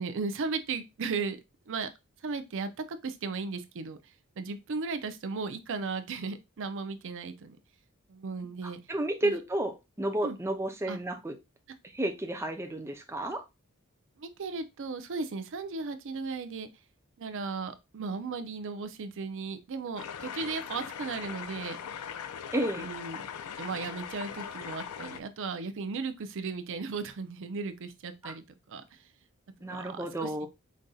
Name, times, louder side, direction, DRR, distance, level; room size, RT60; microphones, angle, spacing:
voice 1, 0.0-1.4 1.7-1.9 2.2-4.0 4.4-7.6 8.1-8.8 9.2-9.3 10.2-10.4 10.9-11.0 14.2-16.7 17.2-21.8 22.8-23.3 23.6-28.8 29.6-30.5, right 4 dB, 60° right, 0.5 m, -36 dB
voice 2, 8.6-11.4 11.9-13.4 22.5-22.9 28.2-28.3 29.6-30.5, right 1 dB, 10° right, 0.6 m, -32 dB
sound 1, 20.0-25.2, left 8 dB, 85° left, 0.4 m, -40 dB
5.2 x 2.6 x 2.3 m
head